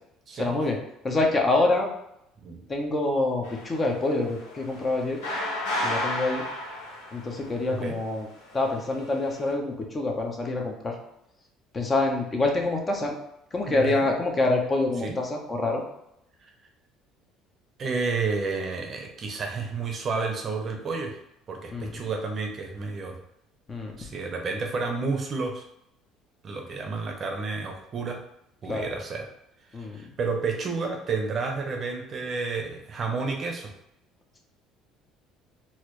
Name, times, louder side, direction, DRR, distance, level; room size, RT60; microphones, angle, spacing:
voice 1, 0.3-0.8 1.0-1.9 2.7-5.2 5.8-6.4 7.1-8.3 8.5-10.9 11.7-13.2 13.5-15.8 21.7-22.0 23.7-23.9 28.7-28.9 29.7-30.0, left 2 dB, 30° left, 1 dB, 0.8 m, -26 dB
sound 1, 3.4-7.8 8.6-9.4, left 1 dB, 85° left, 1.0 m, -33 dB
voice 2, 13.7-14.1 15.0-15.2 17.8-21.2 21.5-23.2 24.0-25.6 26.4-28.2 28.6-29.3 29.8-33.7, right 4 dB, 45° right, 3 dB, 0.7 m, -30 dB
4.2 x 2.0 x 3.1 m, 0.80 s
supercardioid pair, 80°, 0 cm